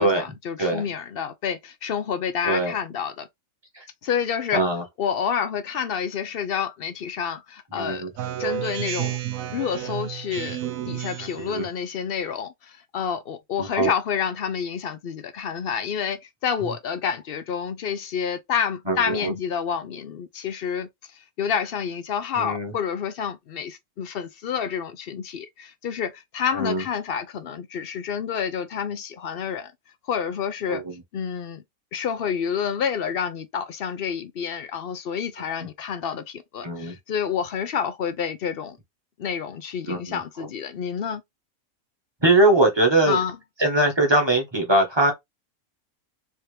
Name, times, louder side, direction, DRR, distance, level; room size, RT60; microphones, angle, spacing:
voice 1, 0.0-3.3 4.0-4.6 5.0-8.0 8.4-9.2 9.5-10.6 10.9-20.9 21.4-29.7 30.1-30.8 31.1-31.6 31.9-38.8 39.2-41.2 43.1-43.4, left 7 dB, 60° left, 0.6 m, -28 dB
voice 2, 2.4-2.7 3.7-3.8 4.5-4.8 7.7-8.1 11.2-11.7 13.6-13.9 16.7-16.8 18.9-19.3 22.3-22.7 26.5-26.9 30.7-30.9 36.6-36.9 39.8-40.5 42.2-43.2 43.6-45.1, right 2 dB, 20° right, 1.0 m, -22 dB
Speech synthesizer, 8.2-11.5, right 11 dB, 70° right, 1.0 m, -31 dB
3.5 x 2.8 x 3.2 m
omnidirectional pair, 1.6 m